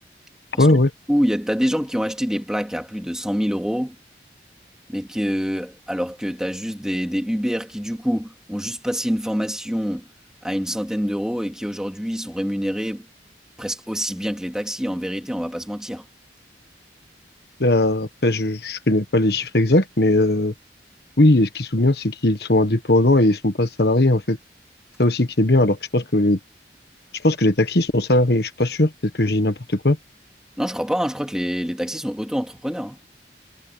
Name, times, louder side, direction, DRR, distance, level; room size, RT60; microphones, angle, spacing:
voice 1, 0.6-0.9 17.6-20.5 21.2-24.4 25.0-26.4 27.2-30.0, left 1 dB, 65° left, 1.5 m, -19 dB
voice 2, 1.1-3.9 4.9-10.0 10.4-13.1 13.6-16.0 30.6-33.0, equal, 5° right, 3.0 m, -26 dB
head